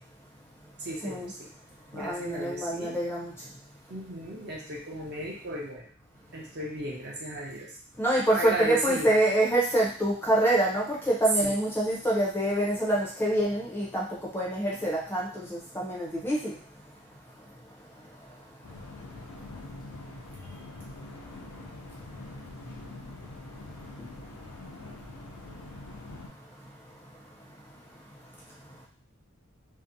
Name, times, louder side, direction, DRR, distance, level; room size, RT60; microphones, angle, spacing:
voice 1, 0.8-1.5 1.9-3.0 3.9-5.9 6.3-7.7 8.3-9.2 11.4-11.5, right 1 dB, 50° right, -3 dB, 0.6 m, -35 dB
voice 2, 2.0-3.3 8.0-14.1 14.3-16.4, right 1 dB, 10° left, -4 dB, 0.5 m, -26 dB
sound 1, 18.6-26.3, left 2 dB, 80° left, 0.5 m, -44 dB
2.6 x 2.1 x 2.6 m, 0.44 s
head